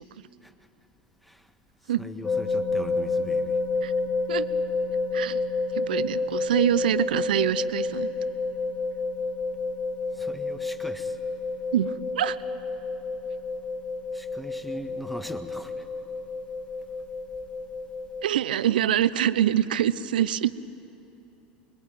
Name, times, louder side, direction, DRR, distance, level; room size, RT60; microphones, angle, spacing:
voice 1, 2.0-3.6 10.1-11.2 14.1-15.9, equal, ahead, 7 dB, 1.6 m, -40 dB
sound 1, 2.2-18.2, left 3 dB, 25° left, 3.3 m, -30 dB
voice 2, 5.7-8.1 11.7-12.4 18.2-20.5, right 11 dB, 80° right, 15 dB, 0.8 m, -25 dB
25.5 x 21.5 x 9.3 m, 3.0 s
hypercardioid pair, 90°, 5 cm